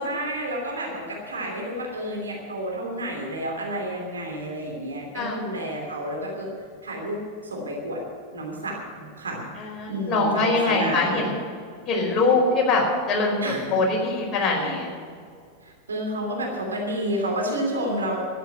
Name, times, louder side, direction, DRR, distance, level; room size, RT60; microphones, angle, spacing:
voice 1, 0.0-6.5 6.8-8.0 8.3-9.5 9.8-11.3 13.4-13.8 14.5-14.8 15.6-18.2, right 1 dB, 75° right, 0 dB, 3.0 m, -30 dB
voice 2, 9.6-11.3 11.9-14.9, left 3 dB, 25° left, -2 dB, 5.0 m, -23 dB
12.5 x 9.5 x 9.2 m, 2.2 s
figure-of-eight pair, 90°, 0 cm